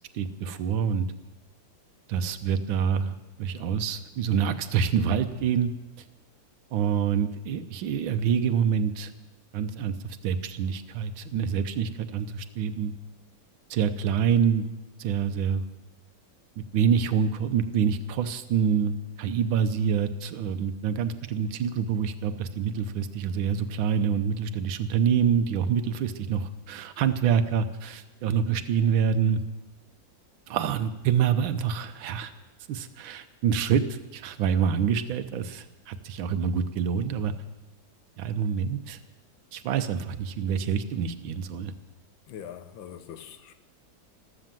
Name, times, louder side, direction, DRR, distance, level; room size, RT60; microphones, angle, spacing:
voice 1, 0.1-1.1 2.1-5.7 6.7-9.1 9.5-12.9 13.7-14.7 15.0-15.6 16.6-29.4 30.5-32.3 32.7-37.3 38.2-39.0 39.5-41.7, right 7 dB, 85° right, 1.6 m, -26 dB
voice 2, 42.3-43.6, left 9 dB, 75° left, 1.7 m, -42 dB
14.0 x 13.0 x 7.5 m
omnidirectional pair, 2.1 m